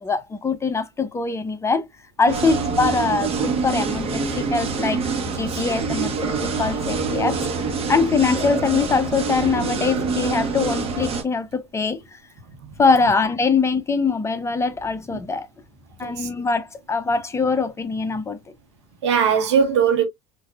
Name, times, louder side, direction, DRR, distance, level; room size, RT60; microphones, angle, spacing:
voice 1, 0.0-1.9 2.2-5.0 5.3-7.4 7.9-12.2 12.8-15.5 16.0-18.4, left 4 dB, 20° left, 0.7 m, -22 dB
sound 1, 2.3-11.2, right 4 dB, 40° right, 1.2 m, -25 dB
voice 2, 19.0-20.0, right 7 dB, 85° right, 1.3 m, -20 dB
4.5 x 2.7 x 2.4 m
hypercardioid pair, 90°, 14 cm